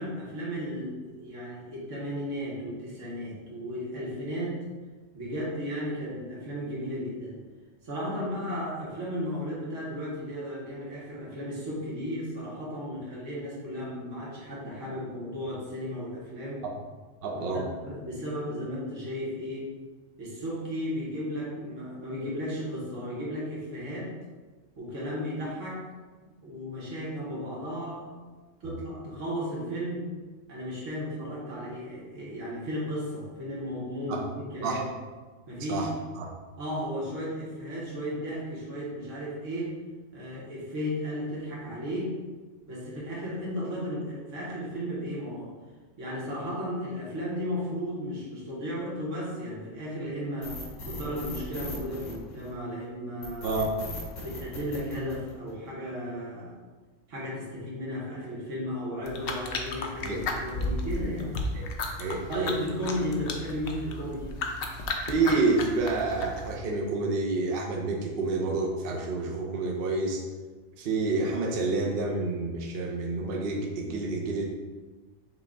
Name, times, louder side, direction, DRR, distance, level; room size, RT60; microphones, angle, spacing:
voice 1, 0.0-4.6 5.1-7.4 7.8-16.6 17.5-19.7 20.2-24.1 24.8-25.8 26.4-28.2 28.6-30.1 30.5-34.8 35.5-35.9 36.6-39.8 40.1-42.2 42.6-45.5 46.0-53.6 54.2-56.6 57.1-61.3 62.3-64.3, equal, 85° right, -6 dB, 1.6 m, -34 dB
voice 2, 17.2-17.7 28.6-28.8 34.1-34.2 34.6-34.8 35.7-35.9 36.2-36.3 53.4-53.7 60.0-60.2 61.5-61.6 62.0-62.5 65.1-70.2 70.8-74.4, right 3 dB, 55° right, -1 dB, 0.7 m, -28 dB
sound 1, 50.4-52.7 53.2-55.7, left 2 dB, 85° left, 1.4 m, -39 dB
sound 2, 59.0-66.6, left 2 dB, 60° left, 0.7 m, -34 dB
5.7 x 2.3 x 3.7 m, 1.4 s
omnidirectional pair, 1.3 m